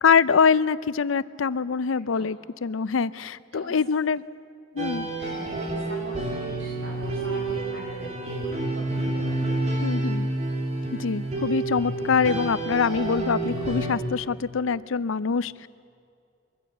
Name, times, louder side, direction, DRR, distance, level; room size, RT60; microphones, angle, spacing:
voice 1, 0.0-4.2 4.7-5.1 9.8-10.3 11.0-15.7, left 5 dB, 90° left, 18 dB, 0.5 m, -24 dB
voice 2, 2.0-2.3 3.5-3.8 5.2-9.5, right 1 dB, 75° right, 0 dB, 5.6 m, -42 dB
sound 1, 4.8-14.0, right 2 dB, 35° right, 3.2 m, -29 dB
22.5 x 15.0 x 8.5 m, 2.4 s
head